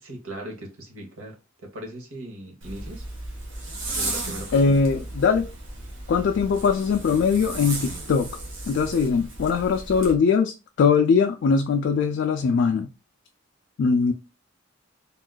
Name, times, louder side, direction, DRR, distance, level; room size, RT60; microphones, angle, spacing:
voice 1, 0.0-1.4 1.7-3.0 3.9-4.7, right 1 dB, 85° right, 1.0 m, -38 dB
Zipper (clothing), 2.6-10.1, right 2 dB, 65° right, 1.1 m, -35 dB
voice 2, 4.5-5.5 6.1-8.3 8.7-12.9 13.8-14.1, left 5 dB, 60° left, 0.3 m, -21 dB
3.6 x 2.4 x 2.2 m
head